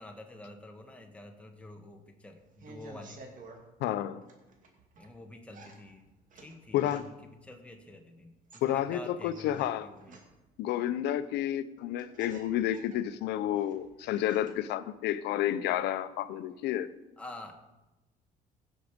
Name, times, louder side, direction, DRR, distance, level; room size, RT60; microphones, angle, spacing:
voice 1, 0.0-3.2 5.0-6.0 6.3-10.1 17.2-17.6, left 1 dB, 5° left, 3 dB, 1.4 m, -48 dB
sound 1, 2.4-3.6 4.2-5.1 5.5-7.3 8.3-10.6 11.5-11.6 11.8-14.7 15.0-15.7, right 3 dB, 50° right, 2.3 m, -53 dB
voice 2, 3.8-4.2 6.7-7.0 8.6-9.9 10.6-16.9, left 12 dB, 85° left, 14 dB, 0.7 m, -30 dB
16.5 x 6.3 x 5.2 m, 1.0 s
cardioid pair, 110°, 17 cm